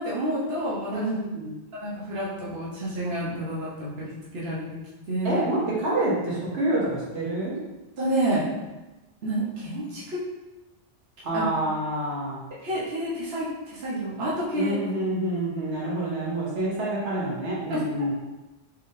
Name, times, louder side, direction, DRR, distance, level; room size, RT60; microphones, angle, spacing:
voice 1, 0.0-1.0 1.7-4.8 5.1-5.4 8.0-8.5 9.2-10.2 11.3-11.4 12.6-14.7 17.7-17.8, right 1 dB, 60° right, -7 dB, 1.2 m, -29 dB
voice 2, 0.9-1.5 5.2-7.6 11.2-12.4 14.5-18.1, right 1 dB, 80° right, -6 dB, 1.4 m, -27 dB
4.4 x 3.6 x 2.6 m, 1.1 s
omnidirectional pair, 1.2 m